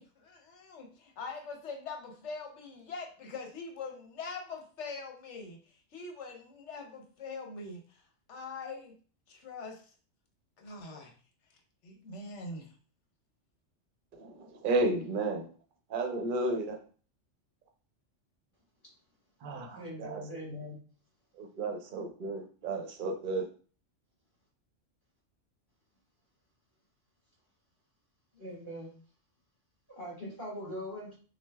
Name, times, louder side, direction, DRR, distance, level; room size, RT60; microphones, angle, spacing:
voice 1, 0.0-5.6 5.9-8.0 8.3-8.9 9.3-9.8 10.6-11.1 11.8-12.7, left 4 dB, 70° left, 3 dB, 1.0 m, -43 dB
voice 2, 14.1-15.5 15.9-16.8 19.4-20.2 21.4-23.5, right 2 dB, 50° right, 5 dB, 0.7 m, -32 dB
voice 3, 19.7-20.8 28.3-28.9 29.9-31.1, equal, 45° left, -5 dB, 1.7 m, -41 dB
5.9 x 2.3 x 2.3 m, 0.40 s
omnidirectional pair, 1.3 m